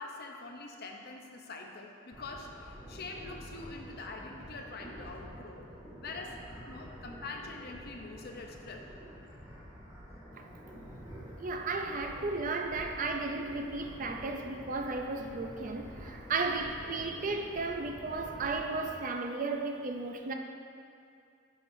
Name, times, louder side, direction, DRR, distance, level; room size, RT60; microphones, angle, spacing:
voice 1, 0.0-5.7 6.0-8.8, left 3 dB, 50° left, 2 dB, 0.7 m, -44 dB
sound 1, 2.1-18.8, equal, 15° right, 1.7 m, -48 dB
voice 2, 11.4-20.3, right 3 dB, 40° right, 3 dB, 0.5 m, -34 dB
10.5 x 6.0 x 2.7 m, 2.4 s
head